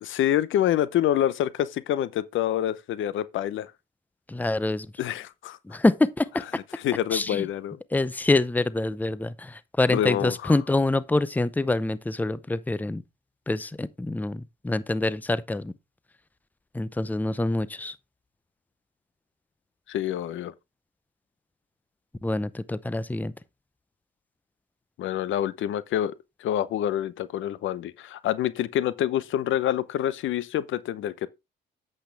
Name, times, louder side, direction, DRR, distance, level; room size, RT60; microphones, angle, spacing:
voice 1, 0.0-3.7 5.0-5.6 6.7-7.8 9.9-10.5 19.9-20.5 25.0-26.1 26.4-31.3, left 11 dB, 75° left, 0.8 m, -27 dB
voice 2, 4.3-4.9 5.6-6.4 7.1-7.5 7.9-13.0 13.5-15.7 16.7-17.9 22.2-23.3, left 2 dB, 10° left, 0.7 m, -26 dB
8.8 x 7.8 x 3.4 m
cardioid pair, 90°, 20 cm